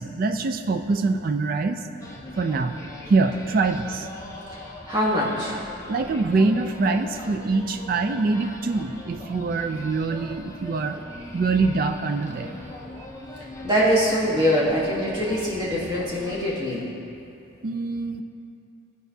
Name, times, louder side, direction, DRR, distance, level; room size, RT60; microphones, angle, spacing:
voice 1, 0.0-1.9 2.4-2.8 3.1-4.1 5.9-11.0 11.3-12.6 17.6-18.2, right 3 dB, 45° right, 7 dB, 0.3 m, -24 dB
sound 1, 2.0-16.6, left 1 dB, 15° left, 0.5 m, -41 dB
voice 2, 4.9-5.5 13.6-16.8, equal, 20° right, -7 dB, 1.3 m, -23 dB
13.0 x 4.7 x 2.7 m, 2.6 s
head